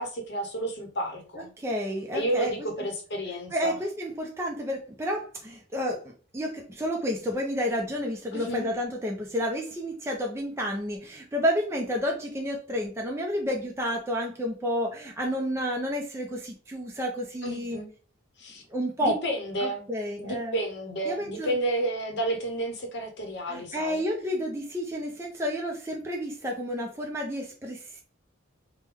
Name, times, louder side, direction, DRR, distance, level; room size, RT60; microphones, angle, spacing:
voice 1, 0.0-1.5 2.1-3.8 8.3-8.7 17.4-17.9 18.4-18.6 19.0-19.9 20.2-24.0, right 1 dB, 55° left, 3 dB, 0.8 m, -31 dB
voice 2, 1.6-2.5 2.8-2.9 3.5-17.8 18.7-19.2 19.6-20.6 21.1-21.6 23.5-28.0, equal, 15° right, 0 dB, 0.4 m, -30 dB
3.2 x 2.1 x 3.4 m, 0.40 s
head